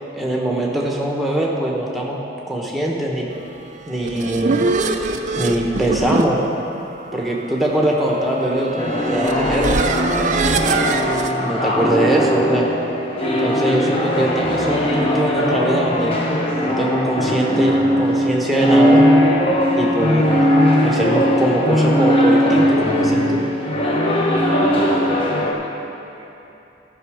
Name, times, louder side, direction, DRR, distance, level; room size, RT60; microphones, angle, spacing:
voice 1, 0.2-2.2 2.5-3.3 3.9-4.6 5.4-6.4 6.7-6.9 7.1-9.8 10.6-11.1 11.4-12.7 13.4-16.2 16.7-19.1 19.8-20.4 20.8-23.4, right 1 dB, ahead, -3 dB, 1.1 m, -22 dB
sound 1, 3.8-11.3, right 3 dB, 40° right, 0.4 m, -24 dB
sound 2, 8.8-25.5, equal, 30° left, 0.9 m, -18 dB
voice 2, 13.3-13.9 24.7-26.3, right 1 dB, 20° right, 1 dB, 0.8 m, -41 dB
13.0 x 6.2 x 4.9 m, 2.9 s
head